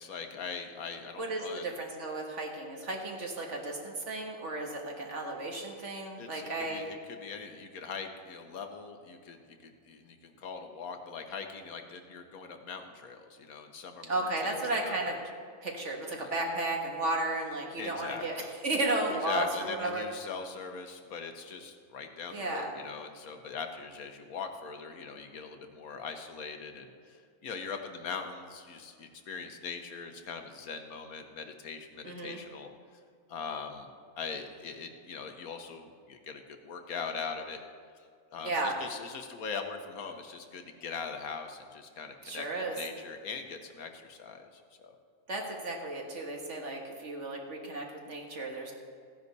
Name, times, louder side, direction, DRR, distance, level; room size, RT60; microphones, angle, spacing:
voice 1, 0.0-1.7 6.2-9.4 9.6-15.2 16.1-16.3 17.8-18.4 19.1-32.7 33.3-33.9 34.2-37.6 38.3-42.5 42.8-44.9, left 5 dB, 75° left, 6 dB, 1.4 m, -41 dB
voice 2, 1.2-6.8 14.1-15.2 15.6-20.0 22.3-22.7 32.0-32.4 38.4-38.7 42.2-42.8 45.3-48.7, right 2 dB, 55° right, 0 dB, 1.8 m, -34 dB
15.0 x 9.8 x 4.1 m, 2.2 s
omnidirectional pair, 1.5 m